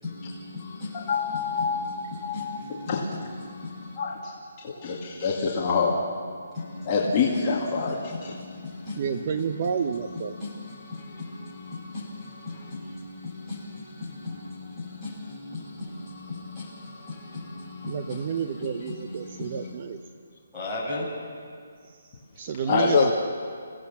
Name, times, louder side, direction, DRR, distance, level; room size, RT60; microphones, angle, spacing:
voice 1, 0.0-4.0 6.5-7.5 7.7-19.9 20.5-21.1, left 2 dB, ahead, -11 dB, 5.7 m, -38 dB
voice 2, 0.6-3.1 4.0-4.3 4.6-6.0 6.9-8.0 8.2-8.3 22.7-23.1, left 5 dB, 20° left, -5 dB, 2.2 m, -26 dB
voice 3, 9.0-10.3 17.9-20.0 22.4-23.1, right 7 dB, 30° right, 8 dB, 0.7 m, -30 dB
29.0 x 17.0 x 7.2 m, 2.1 s
hypercardioid pair, 175°, 0 cm